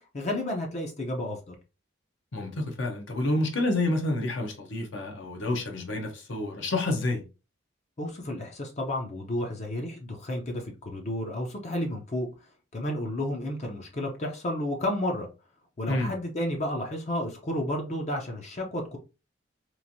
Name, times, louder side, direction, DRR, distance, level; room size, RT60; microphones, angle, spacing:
voice 1, 0.1-1.5 8.0-12.3 12.7-15.3 15.8-19.0, left 1 dB, 35° left, 0.5 m, -31 dB
voice 2, 2.3-7.2 15.9-16.1, left 2 dB, 70° left, 0.8 m, -29 dB
3.1 x 2.5 x 2.6 m
head